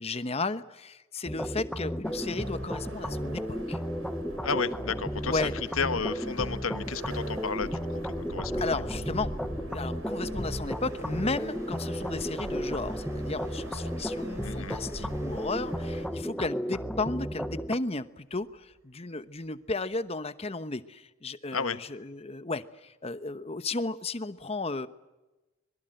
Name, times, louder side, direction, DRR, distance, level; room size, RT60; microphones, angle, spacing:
voice 1, 0.0-3.8 5.3-5.5 8.5-9.4 9.7-24.9, left 3 dB, 30° left, 13 dB, 1.1 m, -34 dB
sound 1, 1.3-17.8, equal, 5° left, 0.9 m, -34 dB
sound 2, 2.0-16.1, right 1 dB, 80° right, 4.4 m, -42 dB
voice 2, 4.4-5.5 5.8-8.7 14.4-14.8 21.5-21.8, left 5 dB, 85° left, 12 dB, 1.4 m, -32 dB
Train, 9.4-18.8 19.2-20.1 20.4-20.5, right 1 dB, 15° right, 3.7 m, -55 dB
25.5 x 22.5 x 7.8 m, 1.1 s
head